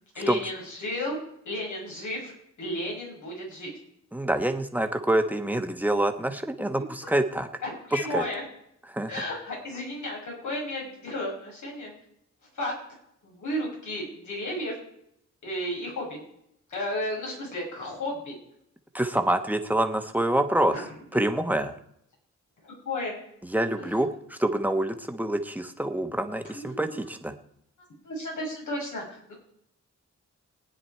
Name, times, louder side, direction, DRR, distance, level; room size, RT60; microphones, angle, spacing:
voice 1, 0.1-1.2 1.4-2.3 2.6-3.7 7.6-8.4 9.1-11.9 12.5-12.7 13.2-14.8 15.4-16.2 16.7-18.4 20.7-20.8 22.6-23.1 23.8-23.9 26.5-26.8 28.0-29.3, left 1 dB, 85° left, -2 dB, 5.9 m, -33 dB
voice 2, 4.1-7.5 7.9-8.2 8.9-9.1 18.9-20.7 21.1-21.7 23.4-27.3, right 1 dB, 5° right, 6 dB, 1.3 m, -26 dB
20.0 x 9.9 x 4.6 m, 0.74 s
wide cardioid pair, 105°, 30 cm